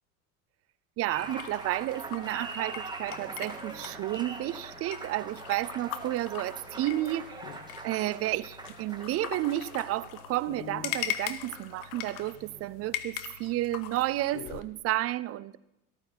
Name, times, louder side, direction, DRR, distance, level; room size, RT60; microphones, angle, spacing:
voice 1, 1.0-7.4 7.8-15.6, right 15 dB, 35° right, 18 dB, 0.4 m, -31 dB
Applause, 1.1-12.8, right 3 dB, 10° right, 1.7 m, -43 dB
sound 1, 1.2-14.6, left 11 dB, 50° left, 1.1 m, -41 dB
14.5 x 13.5 x 4.1 m, 0.88 s
hypercardioid pair, 80°, 44 cm